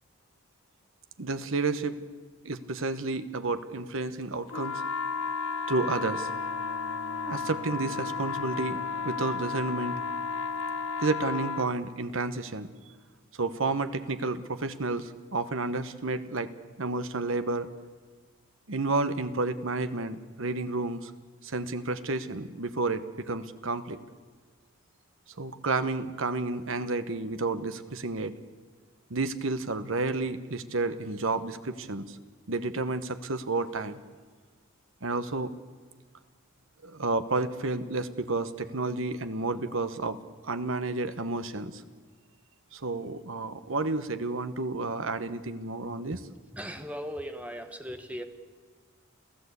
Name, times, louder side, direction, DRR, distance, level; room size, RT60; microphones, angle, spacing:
voice 1, 1.2-2.0 2.4-4.8 5.7-6.3 7.2-9.9 11.0-12.7 13.4-16.5 16.8-17.7 18.7-21.1 21.4-24.0 25.4-28.4 29.1-32.2 32.5-34.0 35.0-35.5 36.8-40.2 40.4-41.8 42.7-46.2, right 3 dB, 70° right, 11 dB, 1.1 m, -31 dB
sound 1, 4.5-11.7, left 5 dB, 75° left, 0.8 m, -33 dB
Bowed string instrument, 5.9-11.3, left 1 dB, 50° left, 1.6 m, -50 dB
voice 2, 46.5-48.2, equal, 5° right, 7 dB, 1.2 m, -38 dB
28.5 x 15.0 x 8.3 m, 1.5 s
head